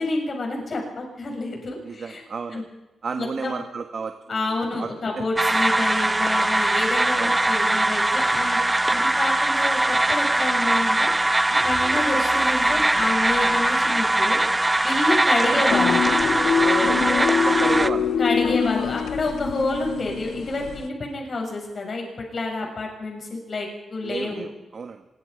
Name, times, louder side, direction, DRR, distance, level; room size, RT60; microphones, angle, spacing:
voice 1, 0.0-2.2 2.5-2.6 3.2-3.6 4.3-8.6 8.9-11.1 11.6-14.4 14.8-16.0 18.2-24.5, left 2 dB, 45° left, 1 dB, 7.1 m, -28 dB
voice 2, 1.8-2.7 3.0-4.9 5.2-5.3 7.1-7.4 8.8-9.0 15.5-15.6 16.5-18.1 24.0-25.0, right 5 dB, 50° right, 6 dB, 1.4 m, -32 dB
sound 1, 5.4-17.9, right 2 dB, 15° right, 0.7 m, -21 dB
Human voice, 11.2-13.9, right 4 dB, 70° right, 5.4 m, -43 dB
sound 2, 15.7-20.9, left 6 dB, 90° left, 1.0 m, -24 dB
25.0 x 23.0 x 5.2 m, 1.1 s
wide cardioid pair, 125°, 0 cm